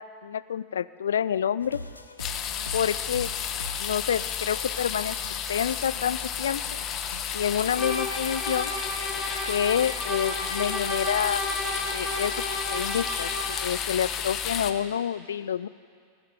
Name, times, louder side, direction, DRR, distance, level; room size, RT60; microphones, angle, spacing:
voice 1, 0.0-1.8 2.7-3.3 3.8-5.2 5.5-6.8 7.3-8.7 9.5-11.4 11.9-12.3 12.7-15.7, left 8 dB, 65° left, 17 dB, 0.3 m, -28 dB
sound 1, 1.6-7.7, left 2 dB, 80° left, 0.8 m, -43 dB
sound 2, 2.2-14.7, left 8 dB, 30° left, 0.8 m, -32 dB
sound 3, 7.7-13.7, left 1 dB, 15° left, 3.2 m, -32 dB
19.5 x 7.2 x 9.1 m, 2.2 s
figure-of-eight pair, 90°, 0 cm